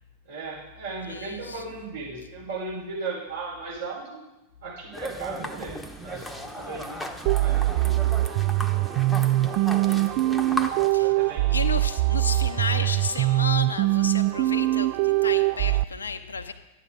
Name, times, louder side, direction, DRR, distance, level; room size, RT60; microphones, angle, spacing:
voice 1, 0.3-4.2 4.6-7.1 7.3-7.9 8.7-8.9 9.8-10.1 10.9-11.6 12.4-12.5, right 3 dB, 65° right, -6 dB, 5.6 m, -37 dB
voice 2, 1.0-1.8 6.6-6.7 8.4-8.6 10.9-16.5, left 5 dB, 75° left, 8 dB, 0.7 m, -33 dB
sound 1, 4.9-10.9, equal, 5° left, 1.0 m, -36 dB
sound 2, 7.3-15.8, right 17 dB, 45° right, 0.3 m, -23 dB
12.0 x 9.5 x 5.1 m, 0.96 s
figure-of-eight pair, 90°, 0 cm